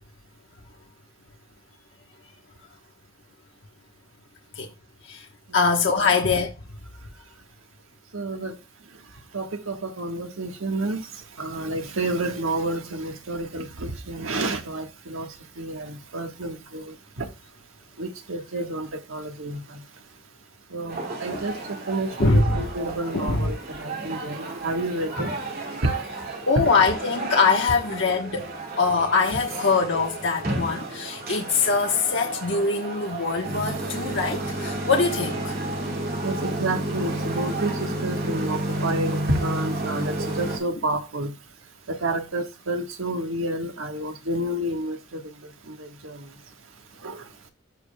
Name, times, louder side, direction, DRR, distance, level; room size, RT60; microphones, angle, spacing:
voice 1, 5.5-6.5 21.3-21.5 22.2-22.6 23.1-23.5 26.5-28.5 28.8-35.5, left 4 dB, 65° left, 1.1 m, -23 dB
voice 2, 8.1-8.5 9.3-11.1 11.4-15.3 15.6-17.2 18.0-19.6 20.7-21.5 21.9-25.3 25.8-25.9 36.2-41.3 41.9-45.0 45.7-46.2 47.0-47.2, right 2 dB, 90° right, 1.5 m, -29 dB
sound 1, 20.9-40.6, right 1 dB, 50° right, 2.5 m, -31 dB
14.0 x 5.0 x 2.2 m
head